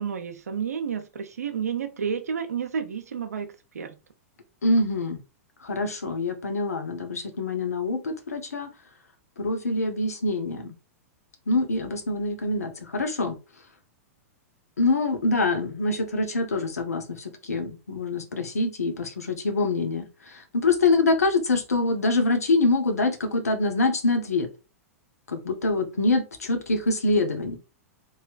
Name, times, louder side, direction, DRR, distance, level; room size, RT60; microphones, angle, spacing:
voice 1, 0.0-4.0, right 7 dB, 85° right, 0.5 m, -31 dB
voice 2, 4.6-5.2 5.6-8.7 9.4-10.7 11.5-13.4 14.8-24.5 25.3-27.6, left 2 dB, 90° left, 0.7 m, -25 dB
3.1 x 2.7 x 2.2 m
hypercardioid pair, 110°, 8 cm